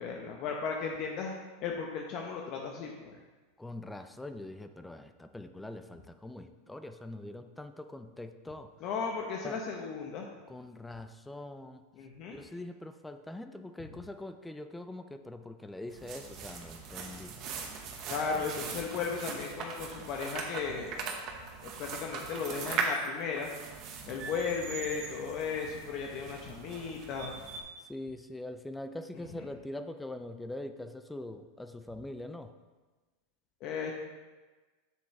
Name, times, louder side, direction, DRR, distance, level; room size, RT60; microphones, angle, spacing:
voice 1, 0.0-1.3 1.6-3.2 8.8-10.3 11.9-12.4 18.1-21.1 21.6-23.5 24.0-27.3 33.6-33.9, left 5 dB, 50° left, 1 dB, 0.8 m, -35 dB
voice 2, 3.6-8.7 9.4-9.6 10.5-11.8 12.3-17.3 18.3-18.4 24.0-24.2 27.9-32.5, left 1 dB, 5° left, 9 dB, 0.4 m, -43 dB
sound 1, 15.9-27.6, right 5 dB, 45° right, 1.1 m, -40 dB
7.3 x 7.1 x 3.2 m, 1.3 s
supercardioid pair, 125°, 0 cm